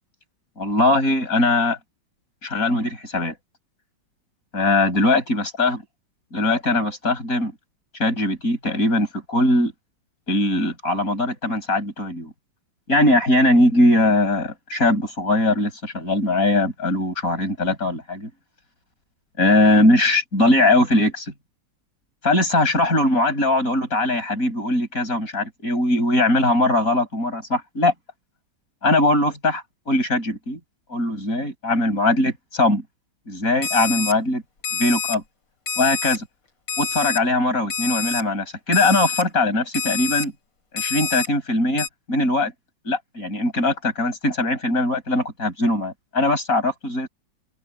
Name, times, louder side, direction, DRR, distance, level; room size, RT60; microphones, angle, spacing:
voice 1, 0.6-1.8 2.4-3.3 4.5-5.8 6.3-7.5 8.0-9.7 10.3-12.3 12.9-18.3 19.4-21.3 22.2-27.9 28.8-30.6 30.9-32.8 33.3-34.4 34.7-35.2 35.8-36.3 36.8-40.3 40.7-42.5 42.8-47.1, left 2 dB, 45° left, 7.6 m, -20 dB
Alarm, 33.6-34.1 34.6-35.2 35.7-36.2 36.7-37.2 37.7-38.2 38.7-39.2 39.7-40.3 40.8-41.3 41.8-41.9, left 6 dB, 80° left, 4.3 m, -27 dB
omnidirectional pair, 2.0 m